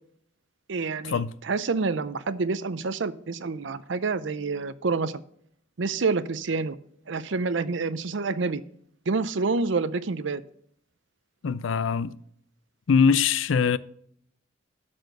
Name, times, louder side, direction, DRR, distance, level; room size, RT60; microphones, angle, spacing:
voice 1, 0.7-5.2 5.8-6.8 7.1-8.6 9.1-10.4, right 4 dB, 75° right, 0.6 m, -28 dB
voice 2, 11.4-12.1 12.9-13.8, left 6 dB, 85° left, 0.5 m, -22 dB
12.5 x 4.4 x 6.6 m
head